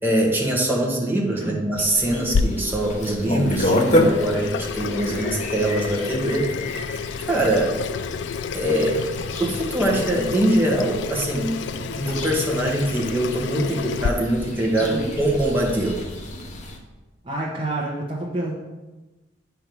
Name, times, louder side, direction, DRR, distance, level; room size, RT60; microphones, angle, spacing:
voice 1, 0.0-6.5 7.3-7.8 8.5-9.0 9.4-11.6 11.9-16.0, right 1 dB, 10° right, -2 dB, 1.5 m, -23 dB
voice 2, 1.4-1.7 14.8-15.2 17.2-18.5, right 2 dB, 30° right, -5 dB, 1.1 m, -28 dB
sound 1, 1.8-16.8, left 1 dB, 40° left, 1.1 m, -30 dB
Water tap faucet / Sink (filling or washing), 2.3-14.1, left 5 dB, 70° left, 0.3 m, -30 dB
8.7 x 4.7 x 5.3 m, 1.1 s
head